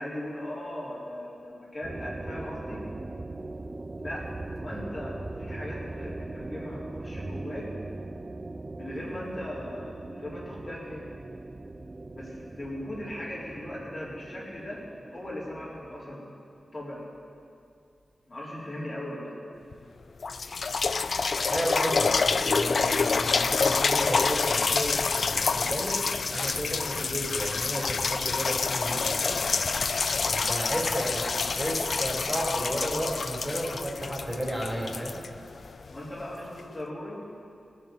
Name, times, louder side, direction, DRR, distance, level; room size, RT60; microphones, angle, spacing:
voice 1, 0.0-2.8 4.0-7.7 8.8-11.1 12.2-14.8 15.1-17.1 18.3-19.4 35.9-37.2, left 1 dB, 35° left, -6 dB, 3.9 m, -38 dB
sound 1, 1.8-16.1, right 2 dB, 35° right, 0.6 m, -40 dB
sound 2, 19.7-19.8 20.2-36.0 36.6-36.7, left 4 dB, 65° left, 0.4 m, -27 dB
voice 2, 21.4-29.7 30.3-35.2, equal, 10° right, -2 dB, 4.4 m, -33 dB
17.5 x 9.1 x 7.8 m, 2.4 s
wide cardioid pair, 70°, 0 cm